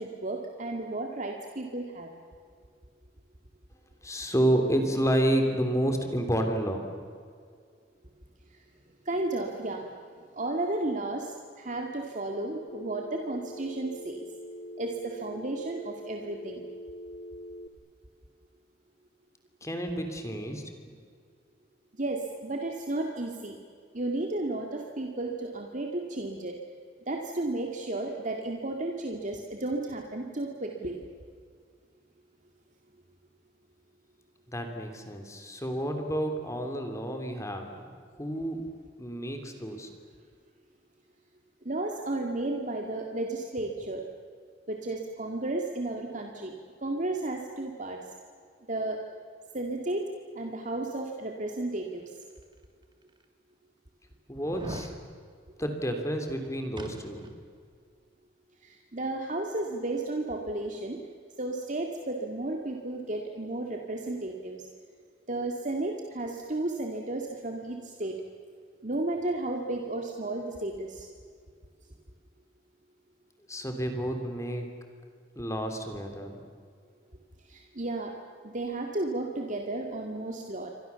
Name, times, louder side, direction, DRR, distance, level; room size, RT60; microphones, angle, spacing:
voice 1, 0.0-2.1 9.1-9.8 10.2-14.2 14.8-16.6 22.0-23.6 23.9-26.6 27.1-31.0 41.7-44.0 44.7-46.5 46.8-48.0 48.7-49.0 49.5-50.1 50.3-52.1 58.6-61.0 61.4-64.6 65.3-68.1 68.8-71.1 77.5-78.1 78.4-80.7, right 2 dB, 45° right, 2 dB, 2.2 m, -33 dB
voice 2, 4.0-6.8 19.6-20.6 34.5-37.9 38.2-38.6 39.0-39.9 54.3-54.9 55.6-57.3 73.5-74.7 75.3-76.4, right 1 dB, 15° left, 5 dB, 3.1 m, -30 dB
Telephone, 12.7-17.7, equal, 40° left, 1.3 m, -43 dB
sound 1, 52.4-52.5 53.2-53.3 54.4-55.0 56.8-57.4 57.7-57.8, right 1 dB, 25° right, 2.4 m, -41 dB
29.5 x 24.5 x 7.1 m, 2.1 s
head